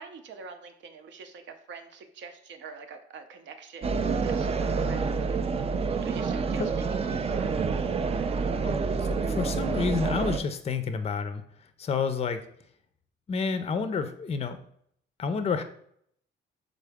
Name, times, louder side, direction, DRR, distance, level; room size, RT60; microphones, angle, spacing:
voice 1, 0.0-5.3 6.0-7.6, right 5 dB, 65° right, 7 dB, 0.7 m, -45 dB
sound 1, 3.8-10.4, right 5 dB, 30° right, 0.4 m, -28 dB
voice 2, 8.6-11.4 11.8-12.4 13.3-14.6 15.2-15.6, left 5 dB, 30° left, 9 dB, 0.5 m, -29 dB
3.8 x 3.7 x 3.5 m, 0.67 s
cardioid pair, 90°, 20 cm